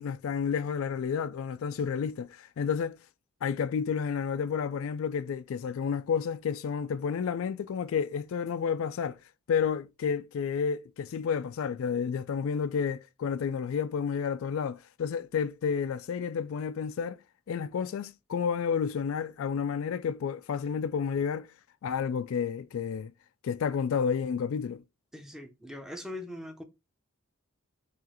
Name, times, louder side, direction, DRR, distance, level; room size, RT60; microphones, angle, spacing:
voice 1, 0.0-3.0 3.4-9.2 9.5-17.2 17.5-21.5 21.8-23.1 23.4-24.8, left 6 dB, 65° left, 0.3 m, -31 dB
voice 2, 25.1-26.6, left 1 dB, ahead, 0.6 m, -41 dB
4.7 x 3.1 x 2.9 m
head